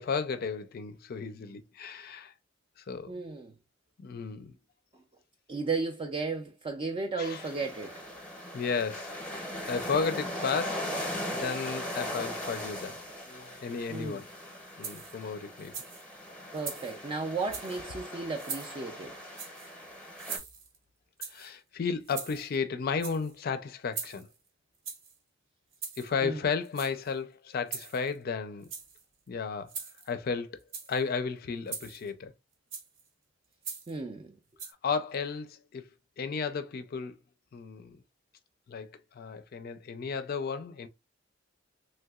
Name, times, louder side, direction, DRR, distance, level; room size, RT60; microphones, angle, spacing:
voice 1, 0.0-2.3 2.9-3.2 4.0-4.5 7.2-7.5 8.5-9.2 9.7-13.0 13.3-14.3 14.8-15.7 21.3-24.3 26.0-28.7 29.3-29.7 30.1-30.6 30.9-32.3 34.8-35.9 36.2-37.2 37.5-38.0 38.7-38.9 39.2-40.9, left 5 dB, 50° left, 0.4 m, -33 dB
voice 2, 3.1-3.5 5.5-8.0 13.9-14.2 16.5-19.2 26.2-26.4 33.9-34.4, right 4 dB, 25° right, 0.4 m, -34 dB
sound 1, 7.2-20.4, left 1 dB, 5° left, 0.7 m, -39 dB
sound 2, 14.8-15.2 15.6-16.0 16.5-17.0 17.4-17.8 18.4-18.8 19.3-19.7 20.2-20.8 21.2-21.5 22.0-22.6 22.9-23.3 23.9-24.3 24.8-25.1 25.7-26.1 26.6-27.1 27.7-28.2 28.6-29.0 29.7-30.1 30.6-31.0 31.7-32.1 32.7-33.0 33.6-34.0 34.6-34.7, right 6 dB, 70° right, 0.9 m, -41 dB
3.3 x 2.8 x 2.3 m
head